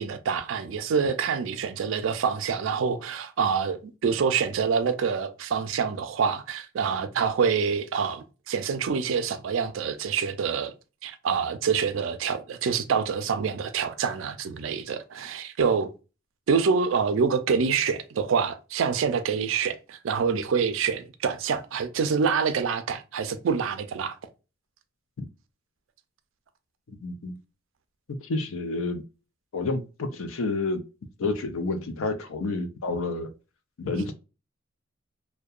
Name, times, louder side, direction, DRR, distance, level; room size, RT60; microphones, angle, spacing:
voice 1, 0.0-10.7 11.0-15.9 16.5-24.2, right 6 dB, 75° right, 0.4 m, -26 dB
voice 2, 27.0-27.4 28.1-29.0 29.5-30.8 31.2-33.3 33.8-34.1, left 3 dB, 85° left, 0.4 m, -29 dB
2.7 x 2.1 x 2.3 m
head